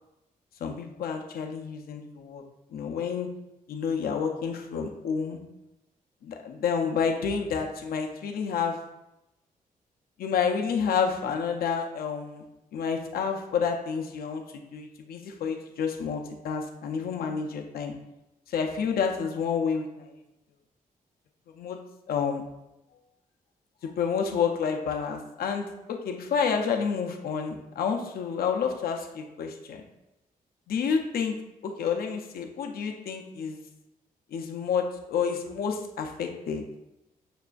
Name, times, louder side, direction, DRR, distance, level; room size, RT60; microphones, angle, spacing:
voice 1, 0.6-2.4 2.7-3.3 3.7-5.4 6.2-8.8 10.2-12.4 12.7-14.4 14.7-17.9 18.5-20.1 21.5-21.8 22.1-22.4 23.8-29.8 30.7-31.4 31.6-33.6 34.3-36.6, left 6 dB, 80° left, 3 dB, 0.5 m, -29 dB
5.9 x 2.4 x 2.3 m, 0.91 s
wide cardioid pair, 155°, 15 cm